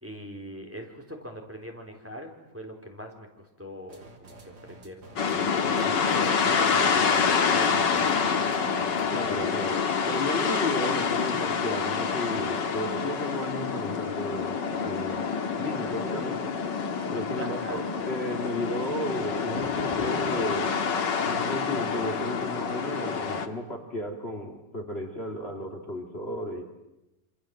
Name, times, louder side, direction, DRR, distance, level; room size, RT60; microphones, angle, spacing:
voice 1, 0.0-8.4 17.4-17.8 19.6-19.7, equal, 5° right, 3 dB, 4.0 m, -41 dB
sound 1, 3.9-9.4, right 2 dB, 65° right, 3.8 m, -50 dB
sound 2, 5.2-23.5, left 6 dB, 90° left, 2.3 m, -27 dB
voice 2, 9.1-15.3 15.6-16.4 17.1-20.7 21.2-26.6, left 1 dB, 35° left, 4 dB, 2.7 m, -33 dB
27.5 x 26.5 x 7.7 m, 0.96 s
omnidirectional pair, 1.9 m